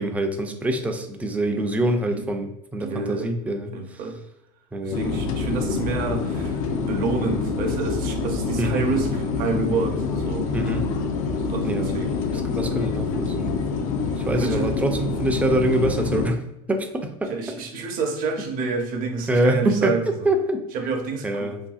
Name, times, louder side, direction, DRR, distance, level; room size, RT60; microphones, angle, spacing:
voice 1, 0.0-3.8 4.7-5.1 8.6-8.9 10.5-10.9 11.6-12.0 12.4-13.5 14.2-16.4 16.7-17.3 19.3-20.6 21.2-21.6, right 1 dB, 10° right, 5 dB, 0.3 m, -25 dB
voice 2, 2.8-3.4 3.7-4.2 4.8-6.6 6.9-10.5 11.4-12.2 13.7-14.8 17.3-20.3 20.7-21.5, right 4 dB, 55° right, 4 dB, 0.6 m, -29 dB
sound 1, 4.9-16.3, left 4 dB, 75° left, 0.4 m, -26 dB
2.7 x 2.6 x 2.3 m, 0.88 s
supercardioid pair, 110°, 18 cm